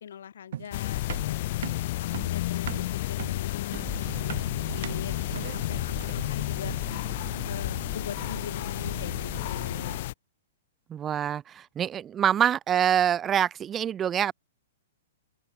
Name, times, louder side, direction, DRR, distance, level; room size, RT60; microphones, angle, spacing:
voice 1, 0.0-1.4 2.1-4.5 4.7-6.7 7.5-10.0, left 9 dB, 75° left, 1.0 m, -41 dB
sound 1, 0.5-6.4, right 11 dB, 60° right, 2.2 m, -40 dB
sound 2, 0.7-10.1, left 17 dB, 45° left, 0.7 m, -31 dB
sound 3, 3.7-10.0, right 20 dB, 40° right, 1.3 m, -42 dB
voice 2, 10.9-14.3, right 9 dB, 15° right, 0.5 m, -25 dB
hypercardioid pair, 160°, 0 cm